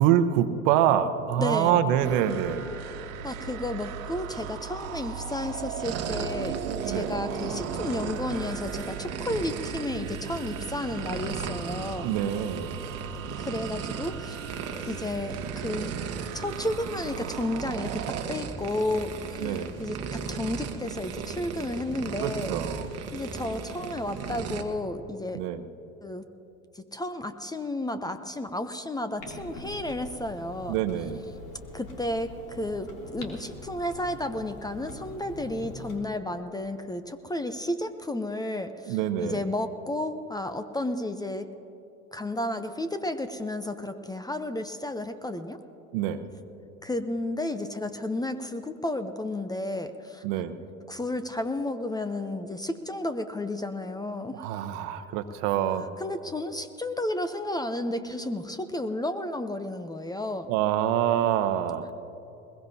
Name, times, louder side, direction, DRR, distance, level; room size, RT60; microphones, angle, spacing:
voice 1, 0.0-2.7 6.8-7.1 12.0-12.8 19.4-19.7 22.2-22.9 25.3-25.6 30.7-31.2 38.9-39.4 45.9-46.2 50.2-50.5 54.3-55.9 60.5-61.9, right 10 dB, 60° right, 10 dB, 1.0 m, -25 dB
voice 2, 1.4-1.8 3.2-12.2 13.4-14.4 14.9-15.9 16.3-22.5 23.1-25.4 26.0-26.2 26.7-30.8 31.7-41.5 42.1-45.6 46.8-50.2 50.9-54.5 56.0-60.5, left 1 dB, 10° left, 10 dB, 0.7 m, -32 dB
sound 1, 2.0-18.2, right 7 dB, 75° right, 1.4 m, -37 dB
sound 2, 5.8-24.6, right 6 dB, 35° right, 1.3 m, -37 dB
Clock, 29.2-36.0, left 2 dB, 60° left, 3.1 m, -44 dB
21.0 x 21.0 x 2.8 m, 2.9 s
hypercardioid pair, 85°, 40 cm